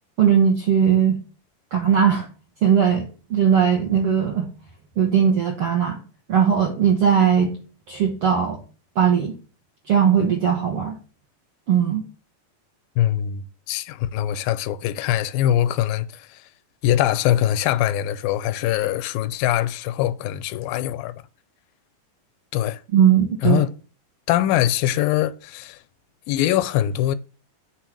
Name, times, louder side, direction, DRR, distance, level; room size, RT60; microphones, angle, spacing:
voice 1, 0.2-1.2 1.7-2.3 2.6-4.5 5.0-6.0 6.3-7.5 7.9-8.6 9.0-9.3 9.9-10.9 11.7-12.0 22.9-23.6, right 8 dB, 70° right, 1.3 m, -19 dB
voice 2, 13.0-16.4 16.8-21.1 22.5-22.8 23.4-23.7 24.3-25.8 26.3-27.2, left 12 dB, 85° left, 2.2 m, -22 dB
8.3 x 4.0 x 6.0 m
omnidirectional pair, 4.1 m